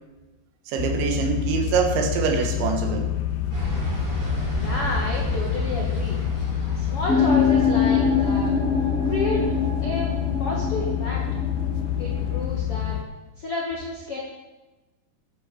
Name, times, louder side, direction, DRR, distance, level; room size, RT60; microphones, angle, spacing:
voice 1, 0.7-3.1, right 6 dB, 80° right, 4 dB, 3.7 m, -24 dB
sound 1, 0.8-13.0, left 11 dB, 90° left, 3.2 m, -27 dB
sound 2, 3.5-8.3, right 3 dB, 60° right, 6.9 m, -32 dB
voice 2, 4.6-6.2 6.7-8.5 9.0-9.5 9.8-10.1 10.4-11.2 12.0-13.0 13.4-14.2, left 2 dB, 65° left, -3 dB, 1.4 m, -30 dB
sound 3, 7.1-12.4, left 5 dB, ahead, 3.1 m, -24 dB
12.5 x 8.5 x 6.9 m, 1.1 s
omnidirectional pair, 5.3 m